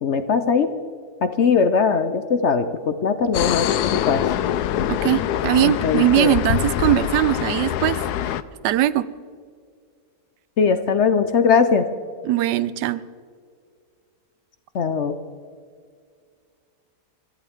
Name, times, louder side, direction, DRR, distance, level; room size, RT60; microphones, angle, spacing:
voice 1, 0.0-0.7 1.2-4.2 5.6-6.4 10.6-11.9 14.7-15.1, left 5 dB, 55° left, 10 dB, 0.8 m, -20 dB
sound 1, 3.3-8.4, left 11 dB, 75° left, 1.1 m, -24 dB
voice 2, 4.9-8.0 8.6-9.1 12.3-13.0, right 13 dB, 85° right, 17 dB, 1.2 m, -20 dB
24.5 x 14.5 x 3.6 m, 2.1 s
omnidirectional pair, 1.8 m